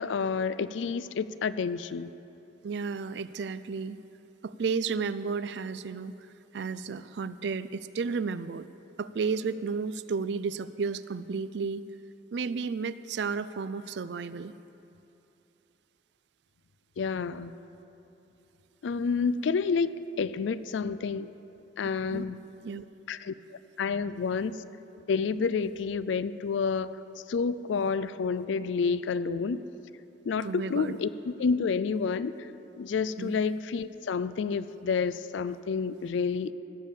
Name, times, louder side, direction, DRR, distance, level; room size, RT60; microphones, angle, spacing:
voice 1, 0.0-2.1 17.0-17.5 18.8-21.3 21.8-22.4 23.1-23.3 23.8-24.6 25.1-27.0 27.3-29.6 30.2-32.5 32.8-36.5, left 5 dB, 75° left, 15 dB, 0.4 m, -29 dB
voice 2, 2.6-4.0 4.4-6.1 6.5-8.7 9.0-11.8 12.3-14.5 22.1-22.2 22.6-22.8 30.4-31.0 33.2-33.3, right 5 dB, 65° right, 15 dB, 0.4 m, -32 dB
16.0 x 7.3 x 6.8 m, 2.9 s
head